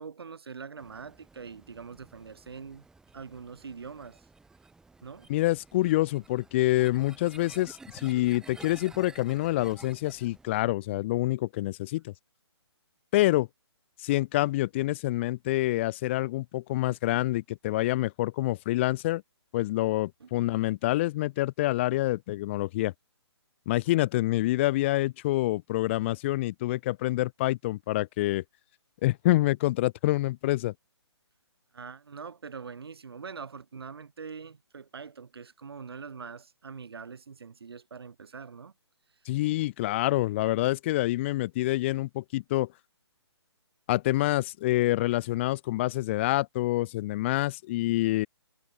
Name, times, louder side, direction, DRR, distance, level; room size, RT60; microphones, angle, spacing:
voice 1, 0.0-2.9 3.1-4.3 5.0-5.3 20.2-20.3 31.7-38.7, right 5 dB, 60° right, 7.9 m, -43 dB
sound 1, 0.8-10.6, right 3 dB, 5° right, 4.4 m, -53 dB
voice 2, 5.3-12.1 13.1-13.5 14.0-19.2 19.5-22.9 23.7-28.4 29.0-30.7 39.3-42.7 43.9-48.3, left 17 dB, 25° left, 0.9 m, -27 dB
figure-of-eight pair, 140°, 15 cm